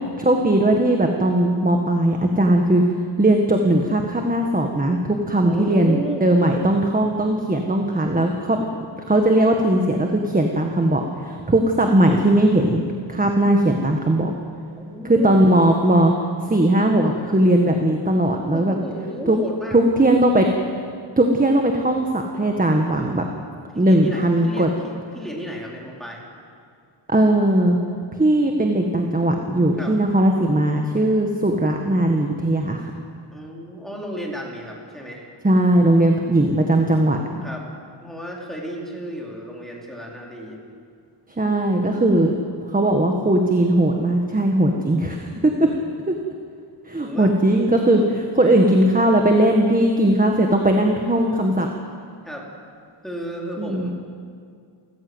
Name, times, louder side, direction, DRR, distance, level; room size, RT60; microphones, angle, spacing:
voice 1, 0.2-2.8 3.2-8.6 9.1-12.8 13.1-14.3 15.0-16.1 16.5-18.7 19.3-19.4 19.7-20.5 21.2-23.2 23.8-24.7 27.1-27.8 28.2-32.9 35.4-37.4 41.4-42.3 42.7-45.7 46.1-46.2 46.9-51.7 53.6-53.9, right 1 dB, 15° right, 3 dB, 1.6 m, -18 dB
voice 2, 5.4-6.3 14.8-15.4 18.5-19.8 23.7-26.2 29.8-30.0 33.3-35.3 37.4-37.6 38.0-40.6 45.5-46.0 47.0-47.3 47.9-48.1 52.2-52.5 53.0-53.9, equal, ahead, -2 dB, 4.3 m, -33 dB
29.5 x 15.0 x 8.0 m, 2.2 s
wide cardioid pair, 135°, 47 cm